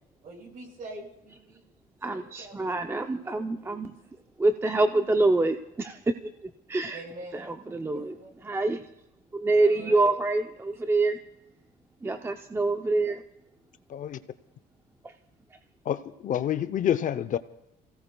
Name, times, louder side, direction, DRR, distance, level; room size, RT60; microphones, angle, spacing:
voice 1, 0.2-1.6 2.1-4.0 4.9-5.1 6.9-7.4 7.9-8.3 9.5-10.1, right 2 dB, 55° right, 0 dB, 6.1 m, -45 dB
voice 2, 2.0-3.9 4.4-6.0 6.7-7.0 7.3-8.1 8.4-8.8 9.3-11.2 12.0-13.2, right 2 dB, 15° right, 7 dB, 0.6 m, -26 dB
voice 3, 15.8-17.4, left 10 dB, 50° left, 13 dB, 0.7 m, -28 dB
28.5 x 17.0 x 2.3 m, 0.88 s
cardioid pair, 110°, 17 cm